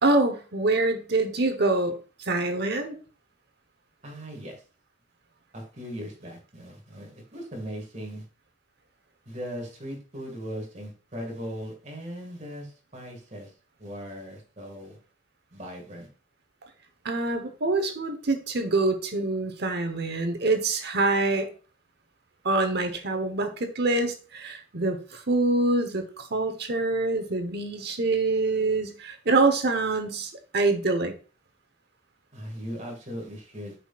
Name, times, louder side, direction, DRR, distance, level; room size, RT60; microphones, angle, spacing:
voice 1, 0.0-2.0 2.3-3.0 17.0-21.5 22.4-31.1, right 2 dB, 55° right, 7 dB, 1.1 m, -25 dB
voice 2, 4.0-4.6 5.5-8.2 9.3-13.5 13.8-15.0 15.5-16.1 32.3-33.8, equal, 35° right, 1 dB, 2.1 m, -38 dB
8.0 x 5.8 x 2.5 m, 0.35 s
head